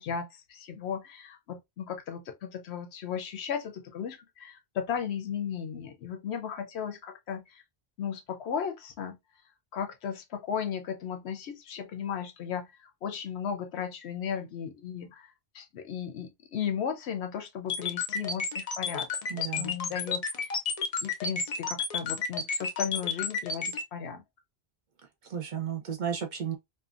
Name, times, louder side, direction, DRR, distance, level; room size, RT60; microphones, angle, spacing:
voice 1, 0.0-7.6 8.0-9.2 9.7-19.1 19.3-20.3 21.0-24.2, left 7 dB, 85° left, 0.9 m, -35 dB
sound 1, 17.7-23.8, left 5 dB, 45° left, 0.5 m, -31 dB
voice 2, 19.3-19.8 25.2-26.6, right 8 dB, 55° right, 0.6 m, -33 dB
2.7 x 2.2 x 2.4 m
omnidirectional pair, 1.1 m